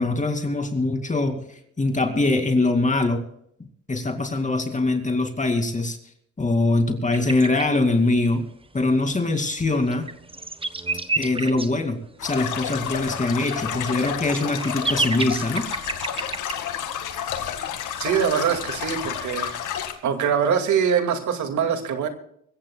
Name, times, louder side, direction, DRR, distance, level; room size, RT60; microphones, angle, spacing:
voice 1, 0.0-1.4 1.8-3.2 3.9-6.0 6.4-8.4 8.7-10.1 11.2-15.7, left 2 dB, 25° left, 5 dB, 2.5 m, -23 dB
sound 1, 7.1-7.7 9.4-9.5 9.7-11.7 12.6-12.7 13.7-16.6, right 3 dB, 20° right, 1.2 m, -29 dB
sound 2, 12.2-19.9, left 9 dB, 85° left, 2.1 m, -31 dB
voice 2, 18.0-19.5 20.0-22.1, right 7 dB, 75° right, 6 dB, 2.3 m, -23 dB
24.0 x 15.0 x 2.3 m, 0.69 s
cardioid pair, 90°, 30 cm